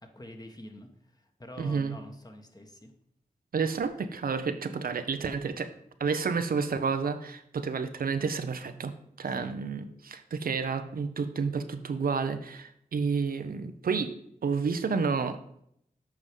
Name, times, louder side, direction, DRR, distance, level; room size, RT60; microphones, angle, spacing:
voice 1, 0.0-2.9 9.3-9.6, left 1 dB, 25° left, 4 dB, 1.4 m, -47 dB
voice 2, 1.6-2.0 3.5-5.7 6.0-14.1 14.4-15.4, right 5 dB, 80° right, 9 dB, 0.6 m, -30 dB
7.6 x 4.8 x 5.3 m, 0.72 s
cardioid pair, 45°, 15 cm